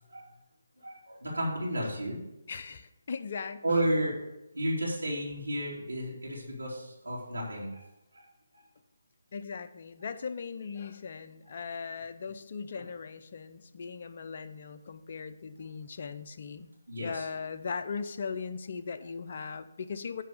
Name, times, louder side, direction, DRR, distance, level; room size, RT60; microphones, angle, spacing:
voice 1, 0.8-2.2 3.6-4.2 4.5-7.8 8.1-8.3 16.9-17.3, right 1 dB, 85° right, -5 dB, 2.9 m, -32 dB
voice 2, 2.5-3.8 9.3-16.7 17.0-20.2, left 5 dB, 50° left, 10 dB, 0.6 m, -39 dB
10.0 x 3.5 x 6.9 m, 0.91 s
figure-of-eight pair, 150°, 0 cm